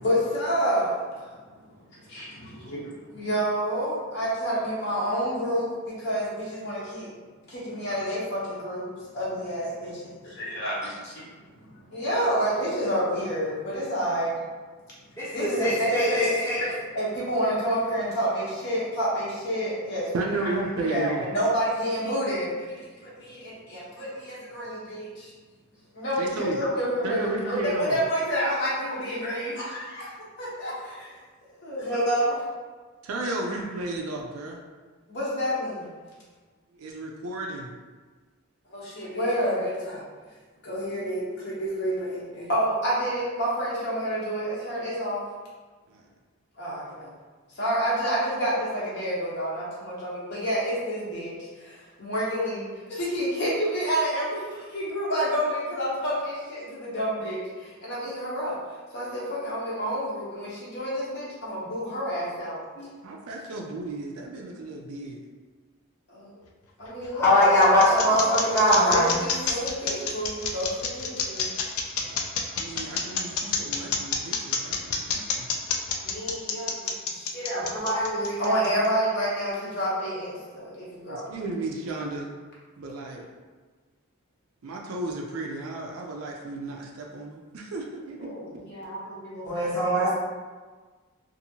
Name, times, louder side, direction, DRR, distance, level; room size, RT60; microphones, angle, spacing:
voice 1, 0.0-1.3 2.1-7.1 7.5-9.7 10.4-11.3 11.9-14.4 15.3-16.5 16.9-20.1 20.7-25.3 25.9-30.1 30.4-31.2 31.6-32.4 35.1-35.9 38.7-40.0 40.6-45.2 46.6-47.1 47.6-58.6 58.9-62.9 66.1-66.3 66.8-67.6 67.9-68.1 68.4-71.5 76.0-77.7 78.4-81.3 88.2-89.7 89.9-90.1, equal, 50° left, -7 dB, 0.8 m, -29 dB
voice 2, 15.2-16.7 66.9-69.2 77.7-78.6 89.4-90.1, equal, 10° left, -8 dB, 0.8 m, -22 dB
voice 3, 20.1-21.2 26.2-26.6 27.0-28.0 33.0-34.6 36.8-37.7 45.9-46.0 63.0-65.2 71.9-75.5 81.1-82.3 82.8-83.3 84.6-88.3, right 2 dB, 80° right, 0 dB, 0.4 m, -33 dB
sound 1, 66.8-78.9, left 6 dB, 80° left, 0.4 m, -28 dB
2.7 x 2.5 x 2.7 m, 1.4 s
head